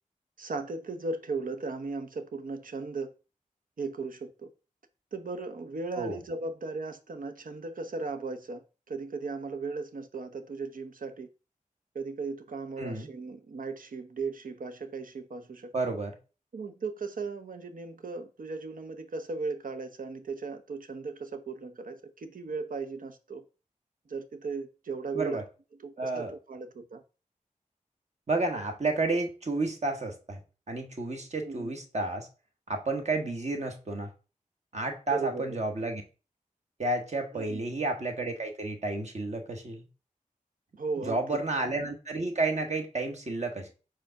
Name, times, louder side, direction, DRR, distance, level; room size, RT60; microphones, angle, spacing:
voice 1, 0.4-3.1 3.8-4.5 5.1-11.3 11.9-15.7 16.5-23.4 24.1-25.4 25.8-27.0 31.4-31.7 35.1-35.6 37.3-37.6 40.8-41.4, right 4 dB, 75° right, 0.8 m, -37 dB
voice 2, 12.8-13.1 15.7-16.1 25.1-25.4 26.0-26.3 28.3-30.4 30.7-32.3 32.7-34.1 34.7-36.0 36.8-39.9 41.1-43.7, right 2 dB, 55° right, 1.3 m, -31 dB
4.9 x 3.9 x 5.7 m
wide cardioid pair, 95°, 14 cm